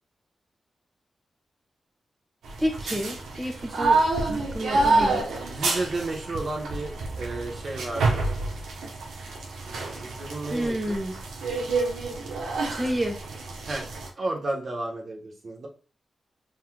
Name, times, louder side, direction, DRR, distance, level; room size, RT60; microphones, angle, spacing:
sound 1, 2.4-14.1, right 3 dB, 90° right, 0.9 m, -28 dB
voice 1, 2.6-5.2 10.5-11.1 12.7-13.2, equal, 15° right, 3 dB, 1.3 m, -29 dB
voice 2, 4.7-8.3 10.0-11.0 13.7-13.9 14.2-15.7, right 2 dB, 60° right, -1 dB, 1.1 m, -33 dB
4.4 x 3.9 x 2.3 m, 0.37 s
supercardioid pair, 45°, 0 cm